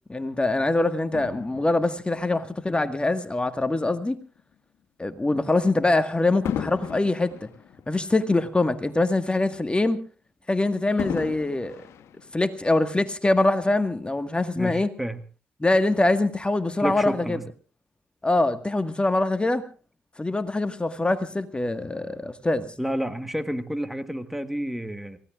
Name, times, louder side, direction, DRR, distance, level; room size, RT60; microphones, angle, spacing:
voice 1, 0.1-4.2 5.0-7.5 7.9-10.0 10.5-11.8 12.3-14.9 15.6-17.4 18.2-19.6 20.2-22.7, left 2 dB, 20° left, 9 dB, 1.6 m, -24 dB
Fireworks, 1.1-3.7 4.4-4.6 6.4-9.0 9.3-9.4 11.0-12.9 13.6-13.7, left 9 dB, 70° left, 1.2 m, -37 dB
voice 2, 14.5-15.2 16.8-17.4 22.8-25.2, equal, 5° right, 9 dB, 1.7 m, -30 dB
29.5 x 16.5 x 2.5 m, 0.37 s
hypercardioid pair, 45°, 5 cm